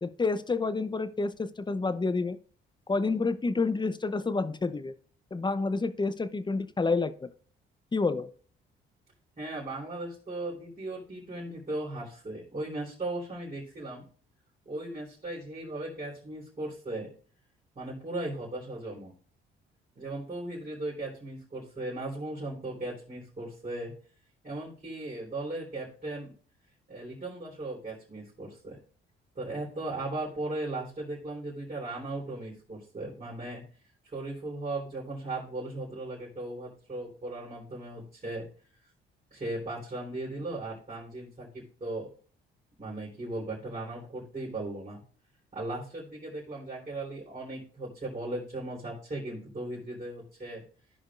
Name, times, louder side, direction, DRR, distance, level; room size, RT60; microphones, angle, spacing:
voice 1, 0.0-2.4 2.9-4.9 5.3-7.3 7.9-8.3, left 3 dB, 20° left, 12 dB, 0.7 m, -29 dB
voice 2, 9.4-14.0 14.7-17.1 17.8-19.1 20.0-23.9 24.4-26.3 26.9-28.8 29.4-33.6 34.1-38.4 39.3-42.1 42.8-45.0 45.5-50.6, right 2 dB, 35° right, -7 dB, 3.9 m, -37 dB
15.0 x 5.1 x 2.5 m, 0.42 s
cardioid pair, 75°, 21 cm